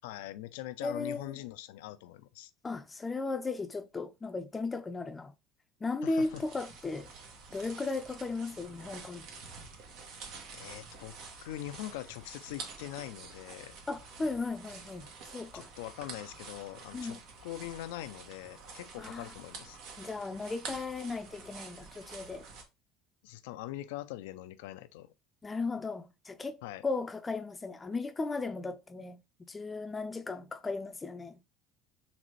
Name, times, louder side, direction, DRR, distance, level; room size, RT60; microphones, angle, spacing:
voice 1, 0.0-2.5 6.0-6.4 10.5-13.8 15.5-19.8 23.2-25.1 26.6-26.8, left 14 dB, 80° left, 0.4 m, -43 dB
voice 2, 0.8-1.3 2.6-5.3 5.8-7.1 7.5-9.2 13.9-15.1 15.3-15.7 16.9-17.2 19.0-19.3 20.0-22.4 25.4-26.6 26.8-29.2 29.5-31.4, left 3 dB, 20° left, 0.5 m, -36 dB
sound 1, 6.2-22.6, right 4 dB, 70° right, 1.1 m, -48 dB
3.9 x 3.3 x 3.1 m
supercardioid pair, 85°, 0 cm